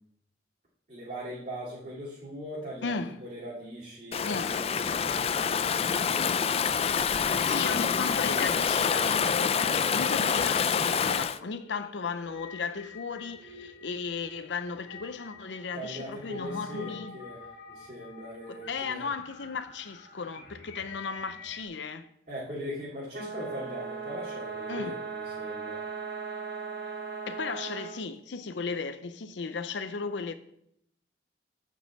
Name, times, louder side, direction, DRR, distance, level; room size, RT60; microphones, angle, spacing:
voice 1, 0.9-7.5 7.9-8.5 15.7-19.1 22.3-25.8, equal, 40° right, 2.6 m, -41 dB
voice 2, 2.8-3.2 4.3-4.5 7.2-17.1 18.5-22.1 24.7-24.9 27.3-30.3, left 5 dB, 80° left, 0.6 m, -35 dB
Stream / Ocean, 4.1-11.4, left 6 dB, 35° left, 0.3 m, -26 dB
sound 1, 10.2-21.6, left 4 dB, 55° left, 1.9 m, -48 dB
sound 2, 23.1-28.0, right 5 dB, 75° right, 2.9 m, -37 dB
9.2 x 5.4 x 7.4 m
head